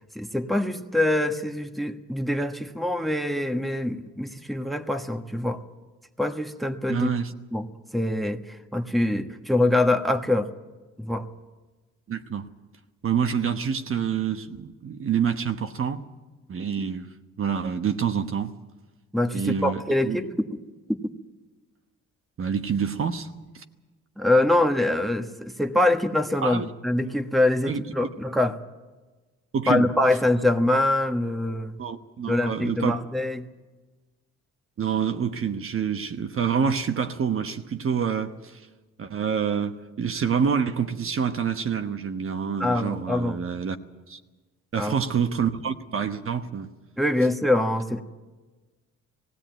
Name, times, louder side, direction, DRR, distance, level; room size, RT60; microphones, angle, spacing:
voice 1, 0.1-5.6 6.2-7.1 7.5-7.7 7.9-10.5 11.0-11.3 19.1-20.5 20.9-21.1 24.2-28.6 29.7-31.8 32.3-33.5 42.6-43.4 44.7-45.0 47.0-48.0, left 1 dB, ahead, 1.3 m, -24 dB
voice 2, 6.9-7.3 12.1-12.5 13.0-16.0 16.5-17.1 17.4-18.5 19.3-20.2 22.4-23.3 23.5-23.6 26.4-26.7 27.6-27.9 29.5-29.9 31.8-33.0 34.8-38.6 39.0-43.8 44.1-44.2 44.7-46.7, right 7 dB, 45° right, 1.1 m, -27 dB
18.5 x 16.5 x 9.1 m
cardioid pair, 90°, 30 cm